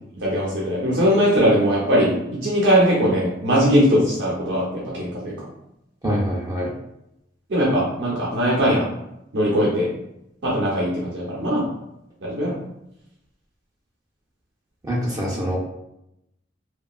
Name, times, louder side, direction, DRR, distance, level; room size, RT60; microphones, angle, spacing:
voice 1, 0.2-2.1 2.4-5.4 7.5-8.8 9.3-9.9 10.4-11.7 12.2-12.6, equal, 65° right, -6 dB, 0.6 m, -20 dB
voice 2, 6.0-6.7 14.9-15.6, equal, 20° right, -4 dB, 0.4 m, -24 dB
2.7 x 2.2 x 2.3 m, 0.83 s
head